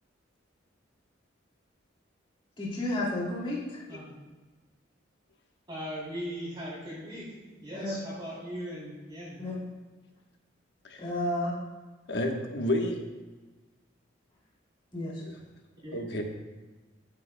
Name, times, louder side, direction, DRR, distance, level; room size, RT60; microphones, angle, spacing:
voice 1, 2.6-3.8 7.7-7.9 9.4-9.6 11.0-11.5 14.9-15.2, left 1 dB, 25° left, -6 dB, 2.7 m, -31 dB
voice 2, 5.7-9.4 15.8-16.0, equal, 25° right, -10 dB, 3.2 m, -39 dB
voice 3, 12.1-13.0 15.2-15.4 15.9-16.2, left 1 dB, 60° left, 2 dB, 1.2 m, -30 dB
14.0 x 8.4 x 2.2 m, 1.3 s
head